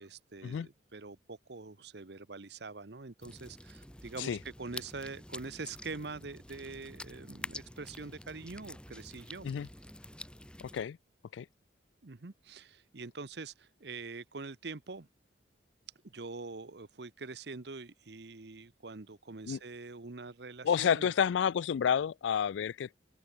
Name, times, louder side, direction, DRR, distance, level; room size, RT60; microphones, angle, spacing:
voice 1, 0.0-9.5 12.0-15.1 16.0-21.1, right 3 dB, 60° right, 0.9 m, -44 dB
sound 1, 3.2-10.8, left 1 dB, 5° left, 3.9 m, -48 dB
voice 2, 10.6-11.0 11.3-11.5 19.5-19.6 20.6-23.0, left 8 dB, 75° left, 0.3 m, -30 dB
open air
head